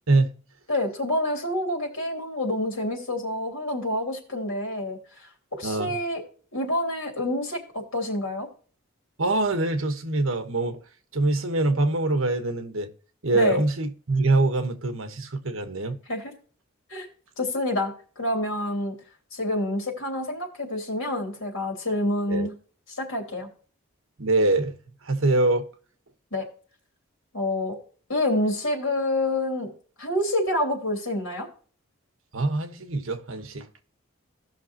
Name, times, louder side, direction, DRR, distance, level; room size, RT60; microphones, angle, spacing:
voice 1, 0.7-5.0 5.5-6.2 6.5-8.5 13.3-13.6 16.1-16.3 16.9-17.1 17.4-19.0 19.3-22.5 22.9-23.5 26.3-26.5 27.3-27.8 28.1-29.7 30.0-31.5, left 1 dB, 70° left, 3.1 m, -27 dB
voice 2, 5.6-6.0 9.2-10.8 11.1-12.9 13.2-16.0 22.3-22.5 24.2-24.8 25.0-25.7 32.3-33.8, right 2 dB, 75° right, 1.2 m, -24 dB
17.0 x 6.0 x 2.9 m
head